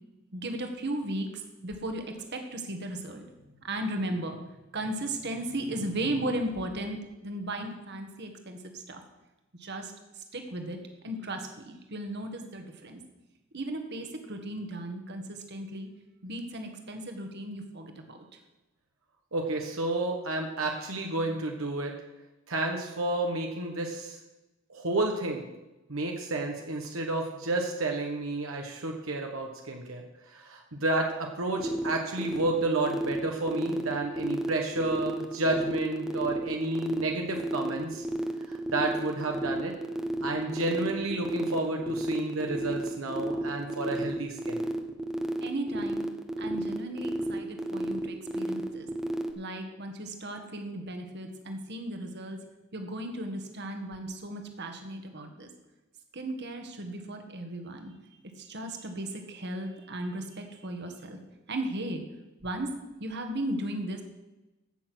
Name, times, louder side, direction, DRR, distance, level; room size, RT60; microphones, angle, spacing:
voice 1, 0.3-2.0 2.3-3.2 3.6-4.4 4.7-7.0 7.2-9.0 9.6-9.9 10.3-10.8 11.0-13.0 13.5-15.9 16.2-18.2 45.4-46.1 46.4-48.9 49.4-52.4 52.7-55.5 56.1-57.9 58.4-61.2 61.5-62.0 62.4-62.7 63.0-64.0, right 1 dB, 55° right, 5 dB, 1.7 m, -36 dB
voice 2, 19.3-21.9 22.5-24.2 24.7-25.5 25.9-38.0 38.5-39.7 40.2-44.6, right 2 dB, 80° right, 2 dB, 1.3 m, -31 dB
sound 1, 31.6-49.3, right 1 dB, 5° right, 1.0 m, -32 dB
16.0 x 6.7 x 6.2 m, 1.0 s
head